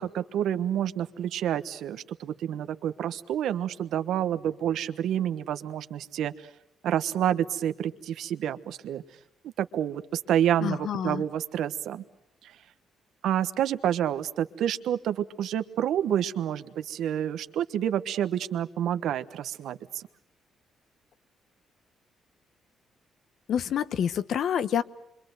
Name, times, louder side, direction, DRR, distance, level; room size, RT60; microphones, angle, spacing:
voice 1, 0.0-6.5 6.8-9.0 9.6-12.0 12.4-12.5 13.2-20.1, right 10 dB, 75° right, 11 dB, 1.2 m, -28 dB
voice 2, 10.6-11.2 23.5-24.8, left 8 dB, 65° left, 14 dB, 1.0 m, -27 dB
27.0 x 24.5 x 8.0 m, 0.79 s
cardioid pair, 90°, 0 cm